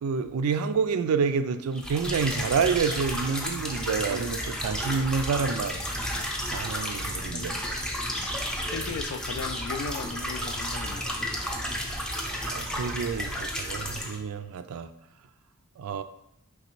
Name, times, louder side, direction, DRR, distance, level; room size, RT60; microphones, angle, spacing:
voice 1, 0.0-5.8 6.5-7.5 12.2-14.9 15.8-16.0, right 5 dB, 75° right, 10 dB, 0.3 m, -28 dB
sound 1, 1.8-14.2, equal, 5° left, 0.4 m, -32 dB
voice 2, 7.3-8.3 8.7-11.2, left 5 dB, 65° left, 10 dB, 0.3 m, -37 dB
5.1 x 3.2 x 3.0 m, 0.86 s
head